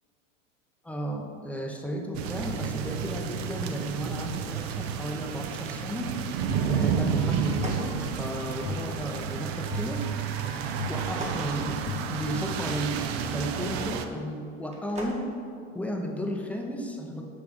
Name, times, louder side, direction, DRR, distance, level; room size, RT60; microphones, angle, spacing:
voice 1, 0.8-6.1 6.6-10.0 10.9-11.8 12.1-15.3 15.7-17.2, equal, 5° left, 1 dB, 0.6 m, -34 dB
sound 1, 2.1-14.1, right 7 dB, 55° right, 0.5 m, -31 dB
sound 2, 6.5-12.9, left 6 dB, 45° left, 0.6 m, -39 dB
sound 3, 7.4-8.7 10.9-12.5 14.6-15.2, right 1 dB, 15° right, 1.0 m, -41 dB
7.1 x 3.4 x 5.0 m, 2.3 s
figure-of-eight pair, 85°, 39 cm